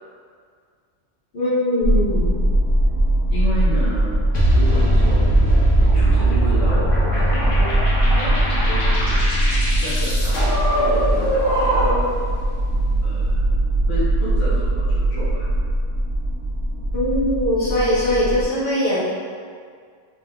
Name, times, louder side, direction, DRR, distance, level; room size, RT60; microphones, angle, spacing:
voice 1, 1.3-2.4 16.9-19.0, left 1 dB, 55° left, -10 dB, 0.9 m, -21 dB
sound 1, 1.8-18.5, right 1 dB, 55° right, 0.7 m, -20 dB
voice 2, 3.3-4.2 4.5-5.3 5.8-7.7 8.0-9.1 9.8-10.4 10.7-12.0 13.0-15.5, equal, 35° left, -10 dB, 0.6 m, -31 dB
sound 2, 4.3-12.2, right 1 dB, 80° left, 1.0 m, -21 dB
3.2 x 2.2 x 2.2 m, 2.1 s
omnidirectional pair, 1.3 m